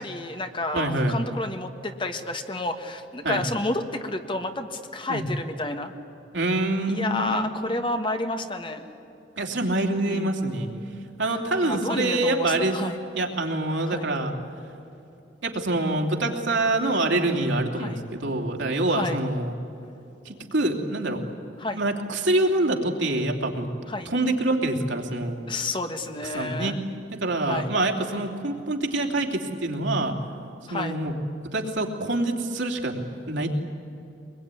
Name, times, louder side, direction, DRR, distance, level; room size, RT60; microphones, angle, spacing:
voice 1, 0.0-5.9 6.9-8.9 10.0-10.4 11.3-13.0 13.8-14.1 17.8-18.0 18.8-19.2 21.6-21.8 23.9-24.1 25.5-26.8 27.4-27.7 30.7-31.0, left 2 dB, 25° left, 6 dB, 1.6 m, -30 dB
voice 2, 0.7-1.2 3.2-3.4 5.1-5.2 6.3-7.4 9.4-10.7 11.2-12.7 13.1-14.3 15.4-19.5 20.2-21.3 21.7-23.7 24.0-25.4 26.3-26.7 27.2-30.1 30.7-31.1 31.5-33.0 33.3-33.6, right 2 dB, 90° right, 2 dB, 3.0 m, -25 dB
23.5 x 21.5 x 9.9 m, 2.8 s
head